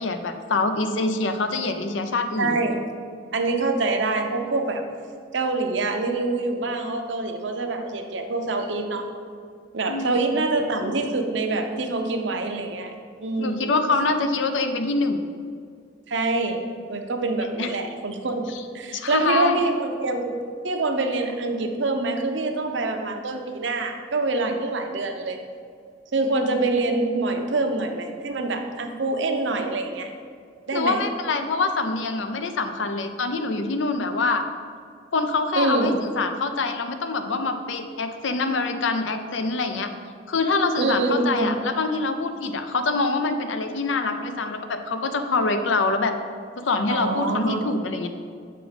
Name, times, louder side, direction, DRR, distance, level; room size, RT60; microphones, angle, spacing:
voice 1, 0.0-2.6 9.9-10.4 13.4-15.2 17.6-17.7 18.5-18.6 18.9-19.6 30.7-34.4 35.1-39.9 40.3-46.2 46.6-48.1, left 3 dB, 85° left, 8 dB, 0.6 m, -25 dB
voice 2, 2.4-2.8 3.3-4.8 5.3-9.1 9.7-12.9 13.2-13.9 16.1-16.6 16.9-20.3 20.6-25.4 26.1-30.1 30.7-31.0 35.5-36.0 40.8-41.5 46.9-47.7, right 2 dB, 75° right, 5 dB, 0.7 m, -25 dB
6.8 x 5.0 x 5.0 m, 2.2 s
head